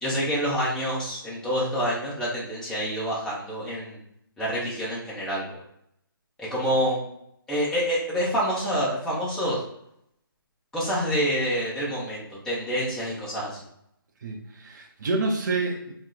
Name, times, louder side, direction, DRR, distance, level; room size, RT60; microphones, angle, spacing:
voice 1, 0.0-4.0 4.4-5.5 6.4-7.1 7.5-9.6 10.7-13.6, equal, 5° left, -8 dB, 0.7 m, -27 dB
voice 2, 14.2-15.9, right 3 dB, 50° right, 0 dB, 0.6 m, -28 dB
2.8 x 2.1 x 3.8 m, 0.76 s
figure-of-eight pair, 150°, 12 cm